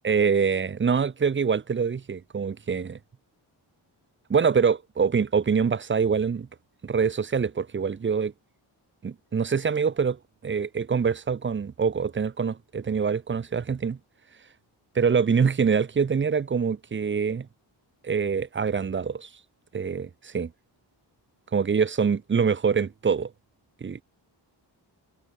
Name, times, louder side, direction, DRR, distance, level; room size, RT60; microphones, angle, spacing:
voice 1, 0.0-3.0 4.3-6.5 6.8-8.3 9.0-14.0 14.9-17.5 18.0-19.3 19.7-20.5 21.5-23.3 23.8-24.0, right 6 dB, 25° right, 0.5 m, -25 dB
wide cardioid pair, 130°, 46 cm